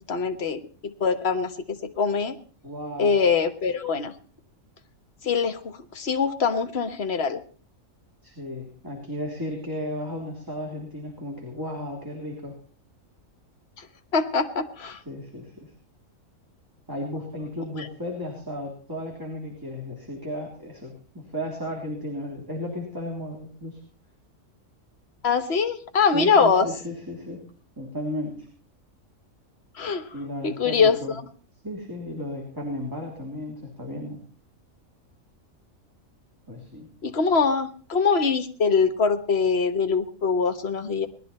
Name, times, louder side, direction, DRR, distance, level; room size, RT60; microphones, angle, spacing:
voice 1, 0.1-2.4 3.0-4.1 5.2-7.4 13.8-13.9 14.1-15.0 17.8-17.9 25.2-26.7 29.8-30.0 30.4-31.0 37.0-41.1, left 5 dB, 50° left, 7 dB, 1.5 m, -23 dB
voice 2, 2.6-3.2 8.2-12.6 15.0-15.7 16.9-23.8 26.1-27.4 27.8-28.5 30.1-31.2 31.6-34.2 36.5-36.9, left 1 dB, 15° right, -1 dB, 3.3 m, -34 dB
19.5 x 12.5 x 4.3 m, 0.43 s
omnidirectional pair, 1.4 m